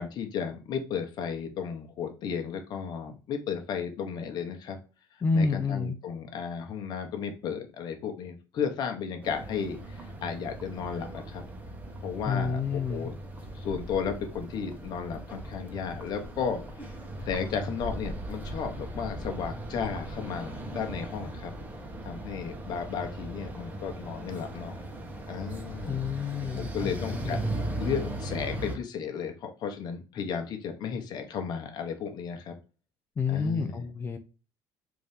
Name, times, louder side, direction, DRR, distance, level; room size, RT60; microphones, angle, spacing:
voice 1, 0.0-4.8 5.3-11.4 12.0-13.1 13.5-17.0 17.3-21.5 22.0-24.8 25.3-26.0 26.6-27.4 27.8-32.5 33.3-33.9, left 7 dB, 55° left, 5 dB, 0.9 m, -34 dB
voice 2, 5.2-6.0 12.2-13.1 25.9-27.6 33.2-34.2, left 4 dB, 25° left, 6 dB, 0.5 m, -29 dB
sound 1, 9.2-28.8, right 1 dB, 20° right, 0.9 m, -38 dB
3.4 x 2.7 x 3.4 m, 0.33 s
cardioid pair, 110°, 8 cm